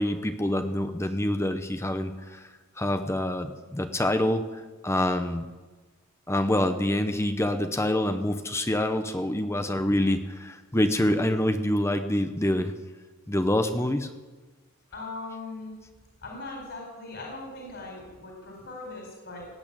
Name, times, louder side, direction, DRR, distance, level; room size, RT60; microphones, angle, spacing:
voice 1, 0.0-5.5 6.3-12.7 13.3-14.1, left 1 dB, 10° left, 8 dB, 0.8 m, -26 dB
voice 2, 14.9-15.7 16.2-19.5, left 2 dB, 55° left, -1 dB, 4.1 m, -39 dB
18.5 x 8.8 x 8.7 m, 1.3 s
head